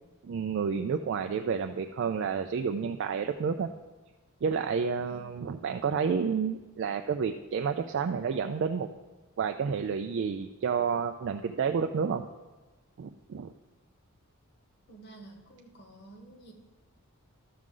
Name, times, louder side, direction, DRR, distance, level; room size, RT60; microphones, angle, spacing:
voice 1, 0.2-3.7 4.4-8.9 9.4-12.3 13.0-13.5, right 6 dB, 55° right, 6 dB, 0.3 m, -30 dB
voice 2, 14.9-16.5, right 2 dB, 45° left, 2 dB, 1.2 m, -51 dB
12.0 x 6.2 x 3.8 m, 1.2 s
head